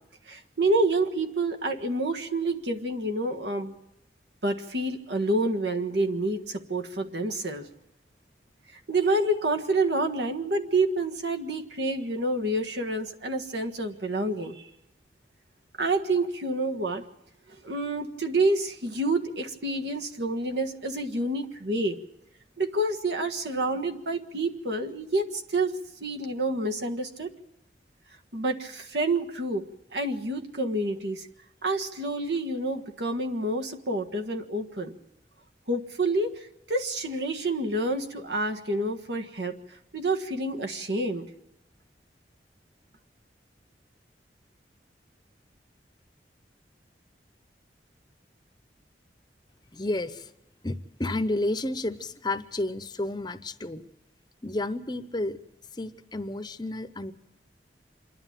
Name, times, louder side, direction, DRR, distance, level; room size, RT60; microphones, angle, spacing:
voice 1, 0.3-3.7 4.4-7.7 8.9-14.7 15.8-17.0 17.6-22.0 22.6-25.7 26.0-27.3 28.3-29.6 29.9-31.3 31.6-34.9 35.7-36.3 36.7-39.6 39.9-41.3, right 2 dB, 75° right, 4 dB, 1.6 m, -28 dB
voice 2, 49.7-50.3 50.6-53.9 54.4-55.4 55.7-57.1, left 2 dB, 25° left, 10 dB, 0.7 m, -31 dB
26.5 x 11.0 x 9.1 m, 0.88 s
head